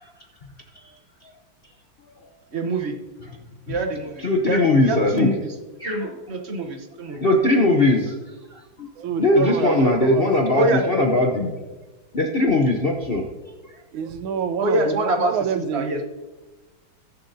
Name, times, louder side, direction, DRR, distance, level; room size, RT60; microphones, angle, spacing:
voice 1, 2.5-3.0 3.7-5.5 5.8-7.3 10.5-10.8 14.6-15.3 15.7-16.0, right 2 dB, 40° right, 4 dB, 1.1 m, -25 dB
voice 2, 4.2-5.3 5.8-6.1 7.2-8.1 8.5-8.9 9.2-11.6 12.1-13.3, left 2 dB, 50° left, 1 dB, 0.7 m, -20 dB
voice 3, 7.6-8.0 9.0-10.3 13.9-16.0, right 7 dB, 90° right, 9 dB, 1.5 m, -28 dB
20.5 x 7.0 x 2.7 m, 1.2 s
omnidirectional pair, 2.1 m